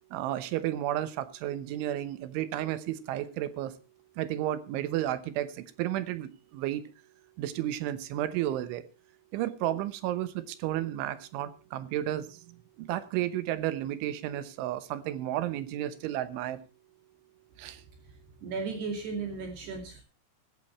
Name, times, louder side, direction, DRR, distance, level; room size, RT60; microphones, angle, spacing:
voice 1, 0.1-3.8 4.2-6.8 7.4-8.9 9.3-16.6 17.6-17.8, right 13 dB, 80° right, 13 dB, 3.3 m, -32 dB
voice 2, 18.4-20.0, right 4 dB, 60° right, 4 dB, 4.1 m, -35 dB
16.0 x 14.5 x 3.2 m, 0.33 s
omnidirectional pair, 5.7 m